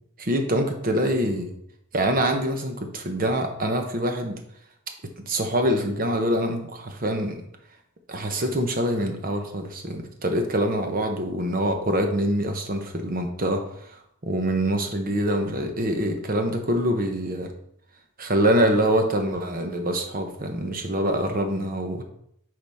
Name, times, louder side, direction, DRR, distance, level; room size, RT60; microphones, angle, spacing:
voice 1, 0.2-1.5 1.9-4.4 5.3-7.4 8.1-17.5 18.2-22.0, right 1 dB, 45° right, 4 dB, 1.0 m, -25 dB
8.5 x 4.7 x 3.5 m, 0.73 s
head